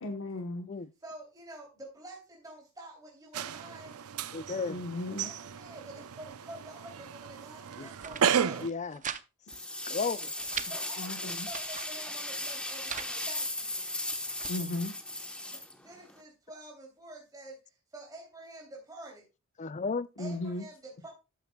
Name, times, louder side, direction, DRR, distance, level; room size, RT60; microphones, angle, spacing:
voice 1, 0.0-0.7 4.7-5.3 11.0-11.5 14.5-14.9 20.2-20.6, left 2 dB, 65° left, 1.1 m, -35 dB
voice 2, 1.0-3.9 5.2-8.6 10.7-13.9 15.4-19.2 20.2-21.1, right 1 dB, 15° right, 3.0 m, -48 dB
sound 1, 3.3-8.7, right 8 dB, 90° right, 0.6 m, -33 dB
voice 3, 4.3-4.8 7.8-7.9 8.6-9.0 9.9-10.3 19.6-20.1, left 4 dB, 35° left, 0.5 m, -33 dB
sound 2, 7.8-8.2 8.6-9.2 9.5-9.6 10.0-10.7 11.3-11.9 12.5-13.1 13.8-14.5, right 8 dB, 35° right, 0.6 m, -41 dB
sound 3, 9.5-16.2, left 1 dB, 5° left, 1.1 m, -37 dB
12.5 x 9.0 x 2.3 m
head